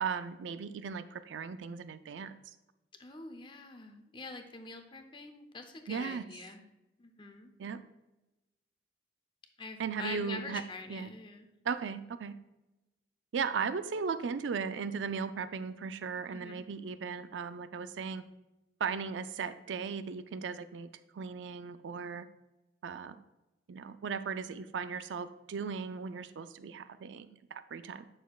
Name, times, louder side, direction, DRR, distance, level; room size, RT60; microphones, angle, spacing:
voice 1, 0.0-2.4 5.9-6.3 7.6-7.8 9.8-10.6 10.9-11.1 11.7-12.3 13.3-18.2 18.8-20.9 21.1-22.3 22.8-23.2 23.7-28.1, right 6 dB, 85° right, 12 dB, 0.4 m, -37 dB
voice 2, 3.0-6.6 7.0-7.5 9.6-11.5 16.3-16.6, left 3 dB, 25° left, 6 dB, 0.7 m, -45 dB
9.1 x 6.3 x 2.4 m, 0.99 s
head